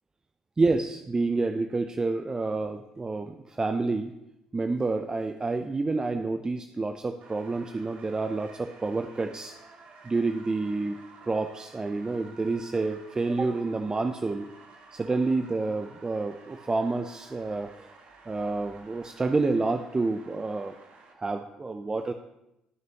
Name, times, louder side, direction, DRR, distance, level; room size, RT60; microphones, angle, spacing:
voice 1, 0.6-4.1 4.5-9.6 10.0-14.5 14.9-17.9 18.3-20.7 21.2-22.1, right 3 dB, 25° right, 7 dB, 0.6 m, -29 dB
sound 1, 7.2-21.1, right 4 dB, 55° right, 1.5 m, -52 dB
13.5 x 6.1 x 2.9 m, 0.87 s
hypercardioid pair, 55°, 3 cm